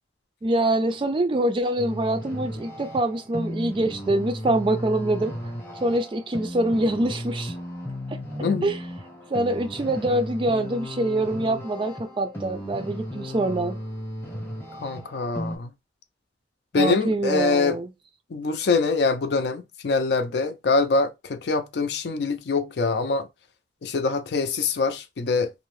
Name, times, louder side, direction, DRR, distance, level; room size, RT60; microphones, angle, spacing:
voice 1, 0.4-5.3 5.8-7.5 8.1-8.2 8.6-8.8 9.3-13.8 16.7-17.9, right 1 dB, 30° right, 0.3 m, -24 dB
sound 1, 1.8-15.6, equal, 10° left, 0.8 m, -35 dB
voice 2, 8.4-8.7 14.8-15.7 16.7-17.8 18.3-23.3 23.8-25.5, left 4 dB, 65° left, 0.4 m, -24 dB
2.6 x 2.0 x 3.0 m
head